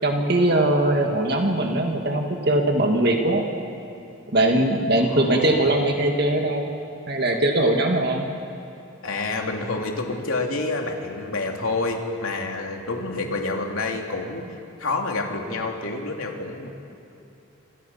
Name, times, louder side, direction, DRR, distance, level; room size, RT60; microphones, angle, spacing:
voice 1, 0.0-3.4 4.3-6.7 7.1-8.2, right 1 dB, 50° right, 2 dB, 2.0 m, -21 dB
voice 2, 4.9-5.7 9.0-14.4 14.8-16.7, left 3 dB, 80° left, 1 dB, 3.1 m, -28 dB
27.5 x 27.0 x 5.8 m, 2.7 s
head